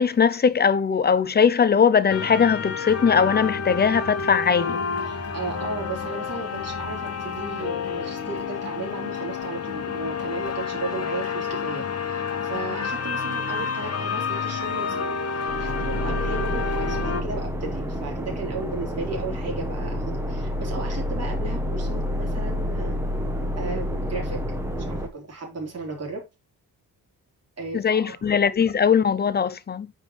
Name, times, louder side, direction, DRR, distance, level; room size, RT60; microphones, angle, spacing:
voice 1, 0.0-4.8 27.7-29.9, left 6 dB, 30° left, 0.6 m, -20 dB
sound 1, 2.1-17.2, left 5 dB, 45° left, 1.3 m, -29 dB
voice 2, 5.0-23.0 23.6-26.2 27.6-28.3, right 3 dB, 45° right, 3.9 m, -35 dB
sound 2, 15.5-25.1, equal, 5° right, 1.4 m, -28 dB
9.3 x 5.4 x 3.3 m
wide cardioid pair, 175°, 35 cm